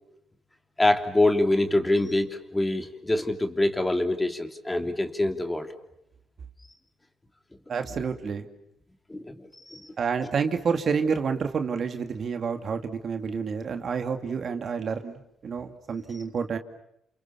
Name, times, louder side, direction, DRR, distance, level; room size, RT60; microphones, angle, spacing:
voice 1, 0.8-5.7 9.1-9.9, left 1 dB, 15° left, 6 dB, 3.0 m, -25 dB
voice 2, 7.7-8.5 10.0-16.6, right 6 dB, 50° right, 7 dB, 2.4 m, -29 dB
29.5 x 28.0 x 7.1 m, 0.79 s
cardioid pair, 90°, 0 cm